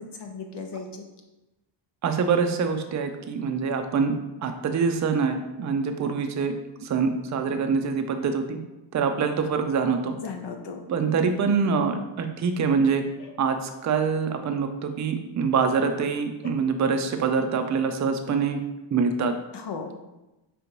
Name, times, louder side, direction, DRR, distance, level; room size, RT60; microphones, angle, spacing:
voice 1, 0.2-1.0 10.2-10.8 13.2-13.3 18.3-18.4 19.5-19.9, left 5 dB, 65° left, 4 dB, 0.6 m, -36 dB
voice 2, 2.0-4.1 4.4-6.5 6.8-8.6 8.9-10.2 10.9-13.0 13.4-18.6 18.9-19.4, right 5 dB, 40° right, 6 dB, 0.4 m, -25 dB
5.1 x 3.4 x 3.0 m, 1.0 s
wide cardioid pair, 140°, 46 cm